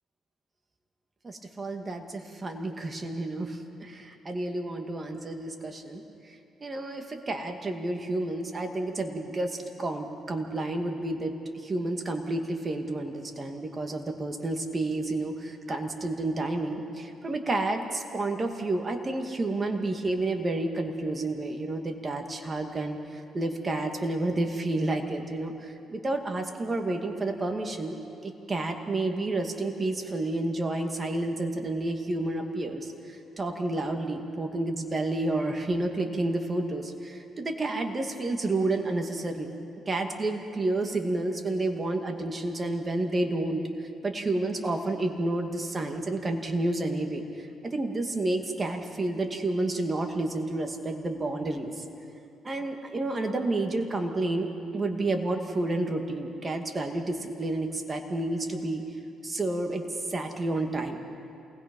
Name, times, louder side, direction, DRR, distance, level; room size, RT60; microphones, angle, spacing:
voice 1, 1.2-28.0 28.2-39.5 39.9-51.8 52.4-58.8 59.2-59.8 60.1-61.0, right 2 dB, 30° right, 4 dB, 2.3 m, -30 dB
28.0 x 20.0 x 5.5 m, 2.6 s
cardioid pair, 90°, 0 cm